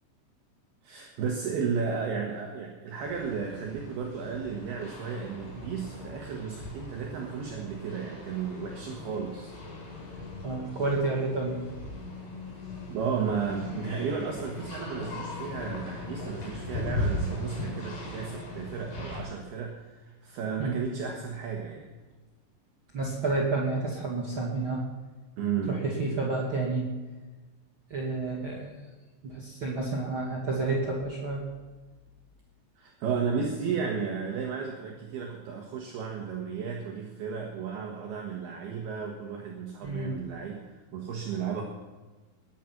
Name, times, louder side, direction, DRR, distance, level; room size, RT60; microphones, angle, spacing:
voice 1, 0.8-9.5 10.0-10.1 12.9-21.9 25.4-25.8 32.8-41.6, right 6 dB, 65° right, 1 dB, 3.0 m, -33 dB
sound 1, 3.0-19.2, left 2 dB, 60° left, 6.7 m, -38 dB
voice 2, 10.4-11.6 20.6-20.8 22.9-24.8 25.7-26.9 27.9-28.7 29.2-31.4 39.8-40.2, right 3 dB, 40° right, -3 dB, 1.9 m, -30 dB
20.5 x 9.3 x 6.0 m, 1.2 s
omnidirectional pair, 5.5 m